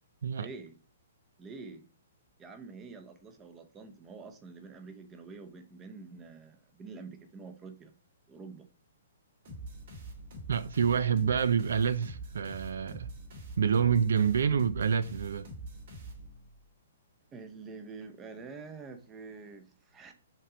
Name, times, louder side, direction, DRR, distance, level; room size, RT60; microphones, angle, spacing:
voice 1, 0.4-0.7 1.4-1.9 2.4-7.9 8.3-8.7 17.3-20.1, right 4 dB, 15° right, 0.8 m, -47 dB
sound 1, 9.4-16.6, right 2 dB, 60° right, 2.6 m, -45 dB
voice 2, 10.5-13.1 13.6-15.5, right 7 dB, 80° right, 0.4 m, -27 dB
5.4 x 3.7 x 4.9 m
hypercardioid pair, 150°, 0 cm